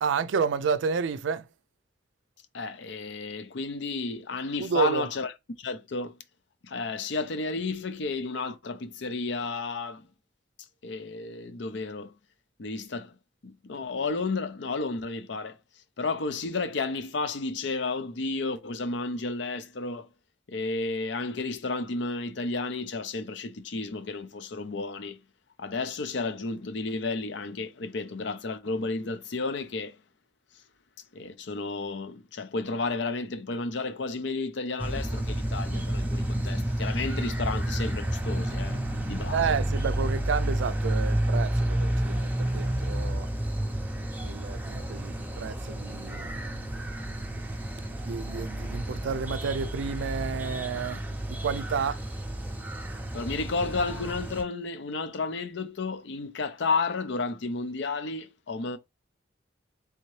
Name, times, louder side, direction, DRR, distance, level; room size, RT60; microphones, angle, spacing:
voice 1, 0.0-1.4 4.6-5.1 39.3-43.3 44.2-46.3 48.0-51.0 51.3-52.0, right 5 dB, 80° right, 0.4 m, -30 dB
voice 2, 2.5-5.3 5.6-6.2 6.6-10.1 10.8-12.1 12.6-13.1 13.4-15.6 16.0-20.1 20.5-25.2 25.6-30.0 31.1-38.8 39.1-39.6 53.1-58.8, left 3 dB, 70° left, 0.6 m, -32 dB
sound 1, 34.8-54.4, right 1 dB, 10° right, 0.5 m, -30 dB
3.5 x 2.8 x 3.1 m
head